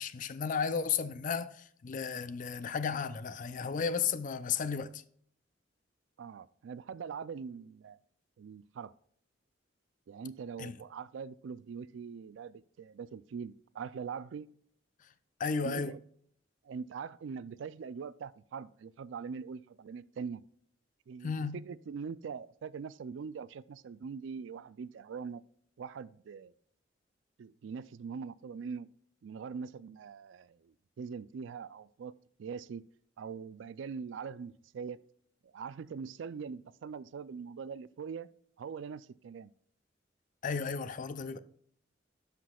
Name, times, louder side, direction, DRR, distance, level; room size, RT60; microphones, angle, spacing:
voice 1, 0.0-5.0 10.6-10.8 15.4-15.9 21.2-21.6 40.4-41.4, left 6 dB, 45° left, 0.4 m, -34 dB
voice 2, 6.2-8.0 8.4-8.9 10.1-14.5 15.6-16.0 16.6-20.4 21.1-21.3 21.6-25.4 25.8-26.5 27.4-28.9 29.2-32.1 32.4-32.8 33.2-35.0 35.4-38.3 38.6-39.5, right 6 dB, 75° right, 0.3 m, -42 dB
11.0 x 5.9 x 2.3 m
head